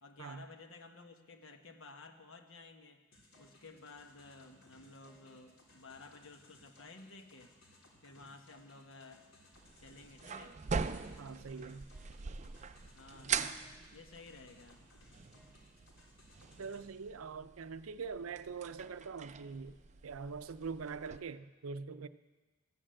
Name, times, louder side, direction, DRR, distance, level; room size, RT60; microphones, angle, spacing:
voice 1, 0.0-3.0 3.4-7.5 8.0-9.3 9.8-10.6 12.9-13.4 13.9-14.8, left 3 dB, 70° left, 1.2 m, -54 dB
sound 1, 3.1-16.8, left 1 dB, 85° left, 3.4 m, -63 dB
sound 2, 9.5-21.2, right 6 dB, 35° right, 0.4 m, -43 dB
voice 2, 11.2-11.9 16.6-19.7 20.0-22.1, right 5 dB, 85° right, 0.5 m, -43 dB
14.0 x 8.8 x 7.6 m
head